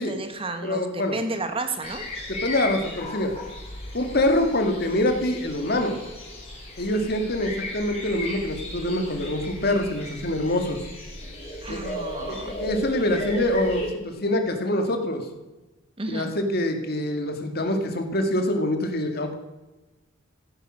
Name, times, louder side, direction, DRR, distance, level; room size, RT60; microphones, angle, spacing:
voice 1, 0.0-2.0 11.6-12.6 16.0-16.3, right 2 dB, 25° right, 7 dB, 1.2 m, -32 dB
voice 2, 0.6-1.2 2.3-3.4 3.9-6.0 6.8-10.9 11.7-12.0 12.3-15.2 16.1-19.3, left 1 dB, 50° left, 5 dB, 2.1 m, -25 dB
sound 1, 1.8-13.9, left 1 dB, 30° left, 4.4 m, -36 dB
15.0 x 9.8 x 6.3 m, 1.1 s
head